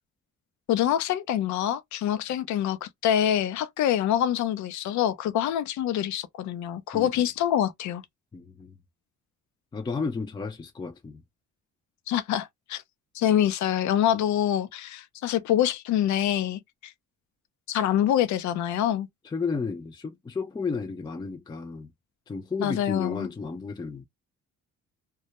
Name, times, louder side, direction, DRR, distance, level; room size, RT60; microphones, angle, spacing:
voice 1, 0.7-8.0 12.1-12.8 13.1-16.9 17.7-19.1 22.6-23.3, left 11 dB, 70° left, 0.5 m, -25 dB
voice 2, 8.3-8.7 9.7-11.2 19.2-21.9 22.3-24.1, left 4 dB, 15° left, 0.4 m, -33 dB
2.2 x 2.1 x 2.7 m
cardioid pair, 90°, 30 cm